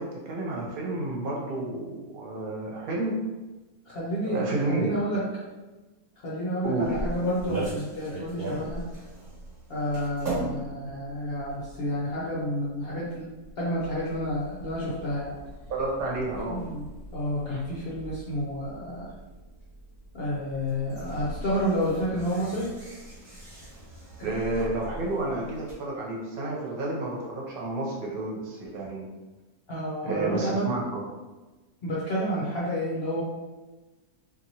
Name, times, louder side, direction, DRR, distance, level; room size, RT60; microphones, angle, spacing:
voice 1, 0.0-3.2 4.3-4.9 6.6-6.9 15.7-16.6 24.2-29.1 30.0-30.8, right 2 dB, 70° right, -3 dB, 1.1 m, -30 dB
voice 2, 3.9-5.4 6.2-8.9 9.7-15.4 16.5-19.1 20.1-22.7 24.2-24.3 29.7-30.6 31.8-33.2, equal, 55° left, -7 dB, 0.7 m, -30 dB
sound 1, 6.6-25.7, right 1 dB, 35° right, 1.2 m, -40 dB
2.9 x 2.6 x 2.7 m, 1.2 s
omnidirectional pair, 1.6 m